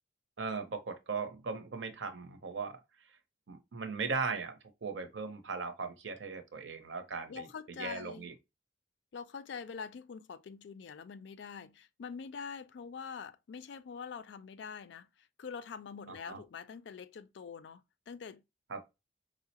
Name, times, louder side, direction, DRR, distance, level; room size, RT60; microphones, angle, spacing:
voice 1, 0.4-2.8 3.5-7.5 7.8-8.3 16.1-16.4 18.7-18.9, right 4 dB, 80° right, 0.6 m, -38 dB
voice 2, 7.3-8.3 9.1-18.4, left 6 dB, 70° left, 0.4 m, -45 dB
4.6 x 2.0 x 2.8 m
head